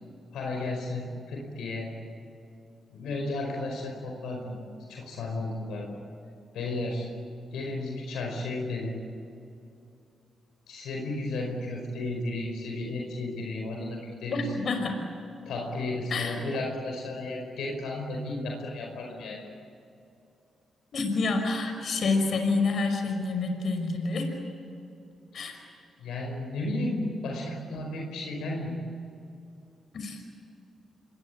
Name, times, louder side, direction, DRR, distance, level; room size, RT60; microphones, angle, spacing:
voice 1, 0.3-1.9 2.9-4.6 4.9-6.0 6.5-7.1 7.5-9.0 10.7-14.5 15.4-19.4 25.3-25.5 26.0-28.8, left 2 dB, 85° left, 1 dB, 5.0 m, -33 dB
voice 2, 14.3-15.0 16.1-16.4 20.9-24.4 25.3-25.6 29.9-30.2, left 3 dB, 65° left, 5 dB, 5.6 m, -28 dB
27.5 x 21.5 x 8.6 m, 2.6 s
cardioid pair, 65°, 0 cm